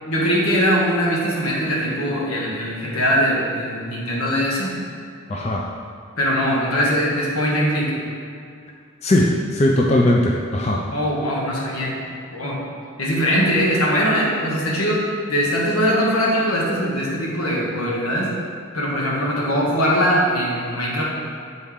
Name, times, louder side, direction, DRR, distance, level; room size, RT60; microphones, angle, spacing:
voice 1, 0.0-4.8 6.2-7.9 10.9-11.9 12.3-12.6 13.0-18.3 18.7-21.0, equal, 90° left, -4 dB, 1.5 m, -21 dB
voice 2, 5.3-5.7 9.0-10.8, left 1 dB, 30° left, -1 dB, 0.4 m, -19 dB
8.0 x 4.3 x 3.6 m, 2.5 s
head